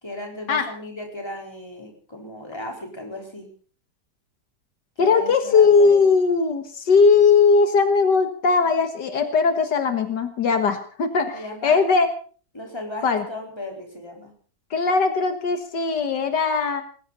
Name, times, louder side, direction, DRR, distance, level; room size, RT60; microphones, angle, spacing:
voice 1, 0.0-3.5 5.0-6.1 11.3-11.8 12.5-14.3, left 1 dB, 15° left, 1 dB, 4.5 m, -36 dB
voice 2, 5.0-12.1 13.0-13.2 14.7-16.8, left 5 dB, 80° left, 8 dB, 2.1 m, -19 dB
20.0 x 17.0 x 4.1 m, 0.42 s
omnidirectional pair, 1.8 m